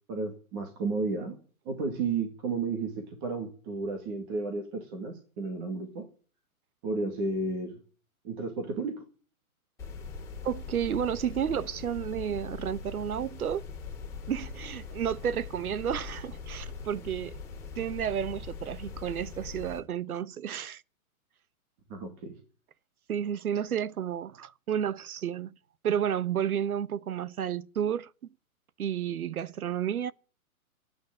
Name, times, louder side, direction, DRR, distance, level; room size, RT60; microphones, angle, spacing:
voice 1, 0.1-1.3 1.7-6.1 6.8-7.8 8.2-9.0 21.9-22.3, right 3 dB, 15° right, 2.0 m, -32 dB
sound 1, 9.8-19.8, left 5 dB, 5° left, 3.9 m, -41 dB
voice 2, 10.4-13.7 14.3-17.4 17.8-20.8 23.1-25.5 25.8-28.1 28.8-30.1, right 9 dB, 75° right, 1.0 m, -31 dB
13.0 x 9.6 x 9.2 m
hypercardioid pair, 175°, 44 cm